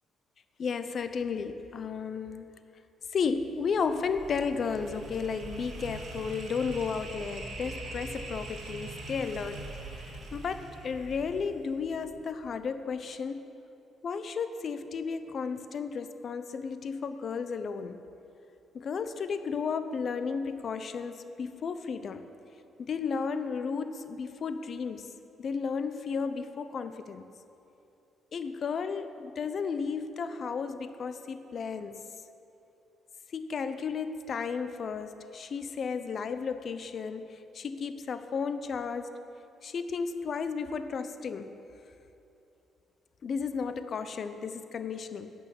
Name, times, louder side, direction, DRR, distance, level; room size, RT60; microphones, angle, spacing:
voice 1, 0.6-2.5 3.1-9.6 10.3-13.4 14.0-18.0 18.7-22.3 22.8-25.1 25.4-27.2 28.3-32.0 33.3-39.1 39.6-41.5 43.2-45.3, left 5 dB, 55° left, 10 dB, 0.7 m, -33 dB
sound 1, 3.2-12.3, right 2 dB, 65° right, 2.9 m, -43 dB
11.5 x 6.5 x 8.3 m, 2.8 s
cardioid pair, 90°, 0 cm